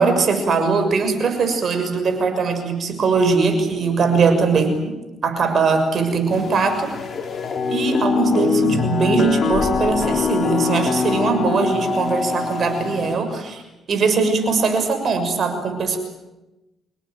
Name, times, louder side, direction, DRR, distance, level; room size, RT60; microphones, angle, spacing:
voice 1, 0.0-4.8 5.2-6.9 7.7-13.6 13.9-16.0, right 4 dB, 55° right, 7 dB, 6.6 m, -20 dB
sound 1, 6.3-13.1, left 5 dB, 45° left, 4.3 m, -23 dB
29.0 x 18.0 x 9.3 m, 0.99 s
cardioid pair, 90°, 0 cm